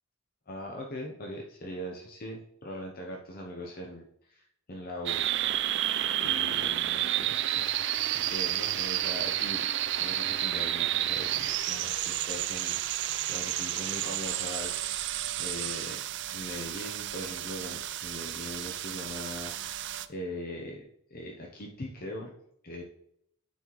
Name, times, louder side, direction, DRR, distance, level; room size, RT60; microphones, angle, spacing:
voice 1, 0.5-5.2 6.2-7.6 8.1-9.7 10.0-16.0 16.3-20.8 21.1-22.3 22.6-22.8, left 1 dB, 45° left, 0 dB, 0.8 m, -41 dB
sound 1, 5.1-20.1, right 12 dB, 55° right, 0.4 m, -31 dB
9.2 x 4.3 x 3.1 m, 0.72 s
head